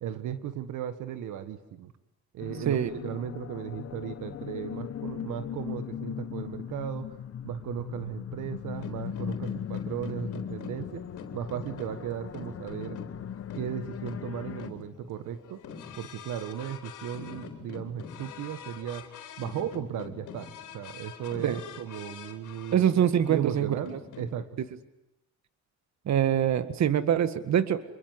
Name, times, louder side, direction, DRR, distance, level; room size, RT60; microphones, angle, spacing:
voice 1, 0.0-1.9 2.3-7.2 7.4-11.0 11.3-13.0 13.5-15.6 15.9-19.1 19.4-24.5, right 9 dB, 85° right, 11 dB, 1.6 m, -36 dB
sound 1, 2.4-14.7, left 9 dB, 50° left, 1.1 m, -38 dB
sound 2, 8.7-24.4, left 6 dB, 85° left, 4.0 m, -44 dB
voice 2, 22.7-23.7 26.1-27.8, right 10 dB, 65° right, 12 dB, 1.8 m, -24 dB
27.0 x 23.0 x 9.7 m, 0.85 s
cardioid pair, 90°, 30 cm